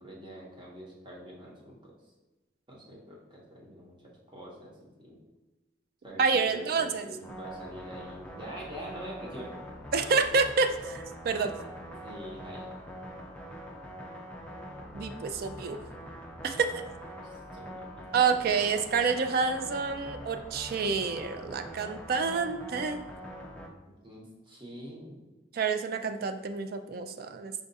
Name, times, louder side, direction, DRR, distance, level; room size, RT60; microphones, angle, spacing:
voice 1, 0.0-1.9 2.7-5.2 6.0-9.5 12.0-12.7 17.2-17.9 23.9-25.3, right 1 dB, 25° right, -3 dB, 1.0 m, -45 dB
voice 2, 6.2-7.1 9.9-11.5 14.9-15.8 16.4-16.7 18.1-23.0 25.5-27.6, right 5 dB, 55° right, 8 dB, 0.3 m, -28 dB
sound 1, 7.2-23.7, equal, 5° left, 0.5 m, -44 dB
4.9 x 2.4 x 3.9 m, 1.1 s
head